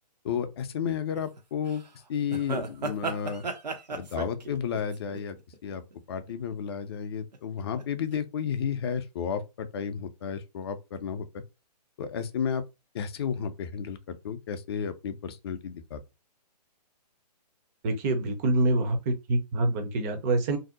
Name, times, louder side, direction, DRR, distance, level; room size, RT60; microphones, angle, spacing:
voice 1, 0.2-1.8 2.1-3.4 3.9-5.4 5.6-5.8 6.1-11.4 12.0-12.6 12.9-16.0, left 7 dB, 40° left, 0.4 m, -32 dB
sound 1, 1.2-1.4 1.7-1.8 2.3-5.9 6.3-6.7 7.3-7.8 8.1-8.2, right 4 dB, 75° right, 0.8 m, -35 dB
voice 2, 17.8-20.6, right 2 dB, 25° right, 0.6 m, -26 dB
2.6 x 2.0 x 3.7 m
figure-of-eight pair, 130°, 21 cm